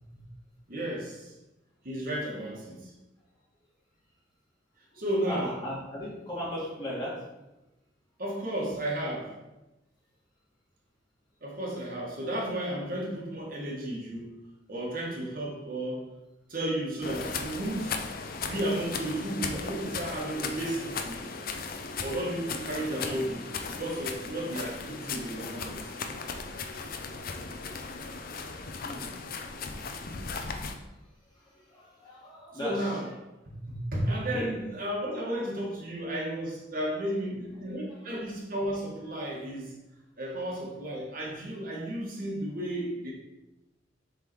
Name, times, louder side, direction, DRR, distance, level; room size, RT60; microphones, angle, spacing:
voice 1, 0.7-1.3 1.8-2.9 4.9-5.5 8.2-9.3 11.4-14.3 14.7-16.1 16.5-17.9 18.4-21.2 22.0-23.5 23.8-26.0 32.5-33.1 33.4-39.7 40.2-43.1, right 1 dB, 50° right, -3 dB, 1.6 m, -33 dB
voice 2, 4.9-7.2 23.0-23.2 27.5-28.1 28.8-29.1 29.8-30.2 31.4-32.8 34.3-34.5 37.3-37.7 38.1-38.2, left 1 dB, 25° left, -7 dB, 2.3 m, -39 dB
sound 1, 17.0-30.8, left 4 dB, 50° left, 0.6 m, -37 dB
6.9 x 3.7 x 4.5 m, 0.99 s
head